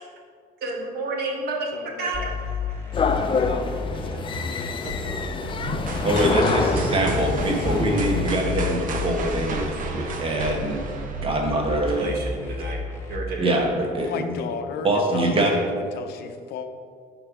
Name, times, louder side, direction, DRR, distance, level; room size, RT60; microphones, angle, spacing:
voice 1, 0.6-1.7 2.0-4.1 4.8-5.5 11.9-12.8 13.1-13.5, right 2 dB, 70° right, 0 dB, 1.3 m, -32 dB
voice 2, 1.7-2.4 14.0-15.6 15.9-16.7, left 6 dB, 70° left, 7 dB, 0.6 m, -34 dB
sound 1, 2.1-13.2, left 3 dB, 15° left, 1.3 m, -32 dB
sound 2, 2.9-8.4, left 5 dB, 30° left, 0.4 m, -27 dB
sound 3, 5.9-11.8, right 3 dB, 50° right, 0.8 m, -33 dB
voice 3, 6.0-10.8 11.2-12.1 13.4-14.3 14.8-15.5, right 1 dB, 30° right, 1 dB, 1.2 m, -24 dB
5.4 x 4.0 x 5.9 m, 2.1 s
cardioid pair, 110°, 17 cm